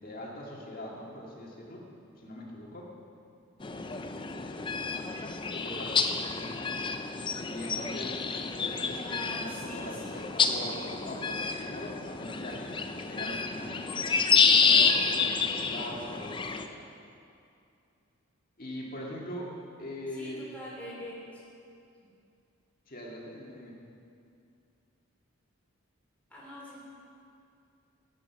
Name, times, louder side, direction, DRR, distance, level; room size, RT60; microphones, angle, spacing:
voice 1, 0.0-1.9 2.2-2.9 5.5-6.5 7.5-8.2 8.5-13.9 14.4-16.9 18.6-20.5 22.9-23.7, left 1 dB, 40° left, -2 dB, 2.0 m, -42 dB
sound 1, 3.6-16.7, left 5 dB, 25° left, 0.4 m, -29 dB
voice 2, 9.1-10.3 20.1-21.4 22.0-22.1 26.3-26.8, equal, 5° left, -6 dB, 3.3 m, -44 dB
12.5 x 8.8 x 5.9 m, 2.5 s
head